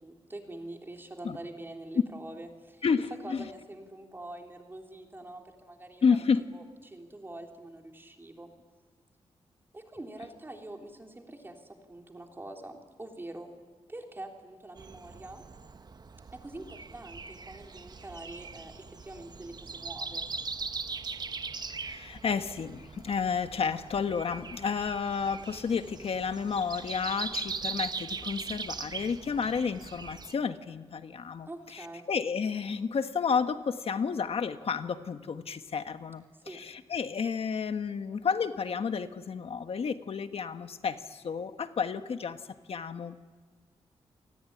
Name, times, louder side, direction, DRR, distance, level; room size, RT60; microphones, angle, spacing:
voice 1, 0.0-2.8 3.2-6.1 6.5-8.5 9.7-13.5 13.9-15.4 16.3-20.3 31.5-32.1 36.4-36.6, right 1 dB, 20° right, 2 dB, 3.4 m, -45 dB
voice 2, 2.8-3.4 6.0-6.4 21.8-42.4 42.7-43.2, left 6 dB, 65° left, 9 dB, 1.4 m, -31 dB
Breathing, 14.8-30.3, right 4 dB, 40° right, 1.0 m, -40 dB
28.5 x 19.5 x 9.9 m, 1.5 s
wide cardioid pair, 120°, 11 cm